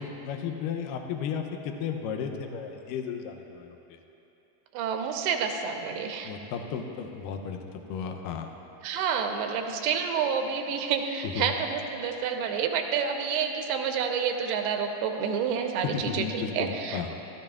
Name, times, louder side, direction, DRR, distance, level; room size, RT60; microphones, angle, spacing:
voice 1, 0.0-4.0 6.2-8.5 11.2-11.5 15.9-17.1, left 7 dB, 90° left, 4 dB, 1.9 m, -34 dB
voice 2, 4.7-6.3 8.8-17.1, right 6 dB, 85° right, 4 dB, 2.7 m, -29 dB
16.0 x 13.0 x 2.3 m, 2.9 s
omnidirectional pair, 4.6 m